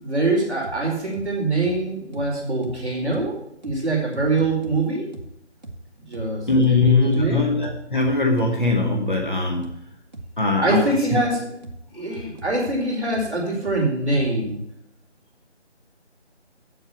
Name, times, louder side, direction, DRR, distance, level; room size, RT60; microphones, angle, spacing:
voice 1, 0.0-3.3 3.6-5.1 6.1-7.5 10.6-11.4 11.9-14.6, right 2 dB, ahead, -19 dB, 3.0 m, -24 dB
sound 1, 0.6-0.8 1.1-1.3 1.6-1.8 2.1-2.3 2.6-2.8 3.1-3.3 3.6-3.8 4.1-4.8 5.1-5.3 5.6-5.8 6.1-6.3 6.6-6.8 7.1-7.3 7.6-8.8 9.1-9.3 9.6-9.8 10.1-10.3 10.6-10.8 11.1-11.3 11.6-11.8 12.1-12.8 13.1-13.3 13.6-13.8 14.1-14.3, right 2 dB, 40° right, 1.2 m, -38 dB
voice 2, 6.5-9.7 10.4-11.2, left 3 dB, 45° left, 1 dB, 1.4 m, -21 dB
7.9 x 7.8 x 7.1 m, 0.77 s
figure-of-eight pair, 170°, 35 cm